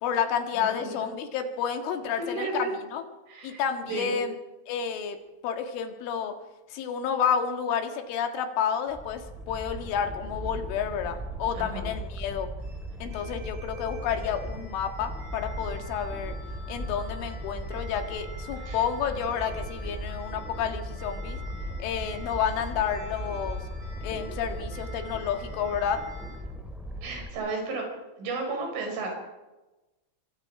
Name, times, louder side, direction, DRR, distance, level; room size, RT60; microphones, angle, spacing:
voice 1, 0.0-3.0 3.4-4.3 4.7-5.2 5.4-6.4 6.7-12.5 13.0-16.4 16.7-21.4 21.8-23.6 24.0-26.0, left 7 dB, 80° left, 5 dB, 4.3 m, -30 dB
voice 2, 0.6-1.1 2.2-2.7 3.3-3.6 3.9-4.2 11.5-11.9 18.7-18.8 27.0-27.9 28.2-29.1, right 3 dB, 75° right, 1 dB, 8.0 m, -33 dB
sound 1, 8.9-27.3, equal, ahead, 1.3 m, -37 dB
sound 2, 12.6-26.4, equal, 55° right, 6.6 m, -49 dB
25.5 x 24.5 x 4.9 m, 1.1 s
omnidirectional pair, 5.5 m